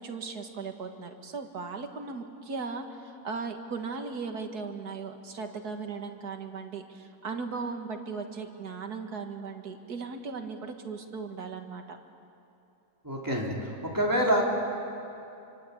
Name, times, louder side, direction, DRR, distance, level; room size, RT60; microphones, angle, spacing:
voice 1, 0.0-12.0, right 4 dB, 80° right, 5 dB, 2.3 m, -37 dB
voice 2, 13.0-13.7 13.9-14.4, equal, 10° right, -3 dB, 4.0 m, -26 dB
27.0 x 24.5 x 8.7 m, 2.7 s
omnidirectional pair, 1.7 m